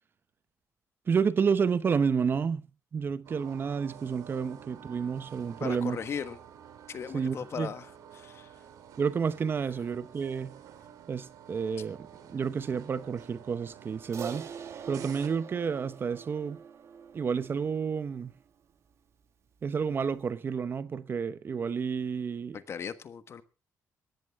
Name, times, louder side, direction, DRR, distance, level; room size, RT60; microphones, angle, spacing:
voice 1, 1.1-2.7 2.9-6.0 7.1-7.7 9.0-10.6 11.1-14.5 14.9-16.6 17.1-18.3 19.6-22.6, right 6 dB, 40° right, 0.8 m, -30 dB
sound 1, 3.2-15.3, right 9 dB, 90° right, 2.4 m, -50 dB
voice 2, 5.6-6.4 6.9-7.9 8.1-8.5 22.5-23.4, left 7 dB, 50° left, 1.3 m, -37 dB
Crash cymbal, 14.1-18.7, right 7 dB, 55° right, 1.9 m, -44 dB
18.0 x 14.5 x 3.5 m
cardioid pair, 125°, 6 cm